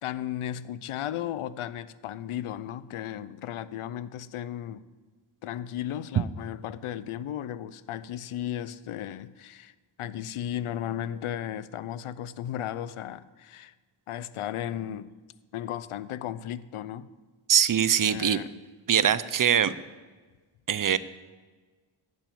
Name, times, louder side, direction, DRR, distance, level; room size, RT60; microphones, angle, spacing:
voice 1, 0.0-4.8 5.4-13.7 14.1-15.1 15.5-17.1 18.0-18.5, left 11 dB, 85° left, 0.6 m, -35 dB
voice 2, 17.5-18.4 18.9-19.7 20.7-21.0, right 8 dB, 40° right, 0.5 m, -22 dB
12.0 x 6.1 x 8.5 m
cardioid pair, 85°, 49 cm